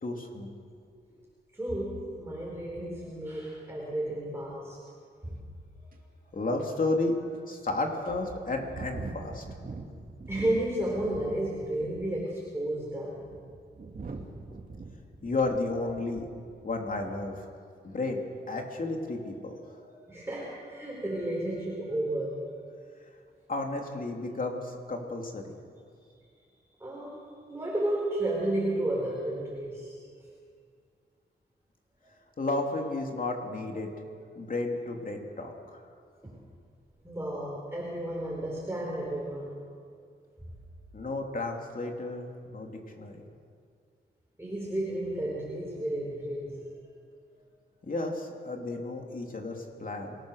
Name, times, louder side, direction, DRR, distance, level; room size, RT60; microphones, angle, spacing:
voice 1, 0.0-0.5 1.2-1.3 6.3-7.1 7.5-9.4 15.2-16.3 16.6-17.5 17.8-19.6 23.5-25.5 32.4-33.9 34.3-35.8 40.9-43.2 47.8-50.2, left 2 dB, 50° left, 2 dB, 3.0 m, -32 dB
voice 2, 1.5-4.8 5.2-5.4 6.5-7.0 7.7-8.0 10.3-13.3 19.2-19.3 19.8-22.6 26.8-30.0 34.0-34.1 36.2-36.4 37.0-39.5 44.4-46.6 48.8-48.9, right 1 dB, 15° right, -4 dB, 4.5 m, -33 dB
sound 1, 5.9-6.0 6.6-6.7 7.3-7.4 8.0-11.4 11.7-12.2 12.9-16.4 16.7-17.0, right 3 dB, 50° right, 2.7 m, -43 dB
27.0 x 18.0 x 6.6 m, 2.2 s
wide cardioid pair, 100°, 19 cm